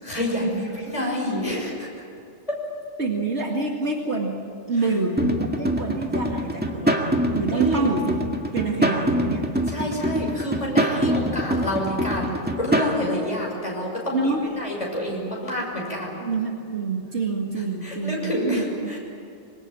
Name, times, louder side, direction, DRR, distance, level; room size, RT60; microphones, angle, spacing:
voice 1, 0.0-1.9 2.5-2.6 7.5-7.9 9.7-16.2 17.8-19.0, equal, 30° left, -2 dB, 6.3 m, -28 dB
voice 2, 3.0-4.4 4.7-8.2 8.5-9.5 14.1-14.5 16.2-18.9, right 3 dB, 70° right, 0 dB, 2.4 m, -27 dB
sound 1, 5.2-13.0, equal, 10° right, 1.9 m, -24 dB
26.0 x 22.5 x 9.0 m, 2.6 s
omnidirectional pair, 1.2 m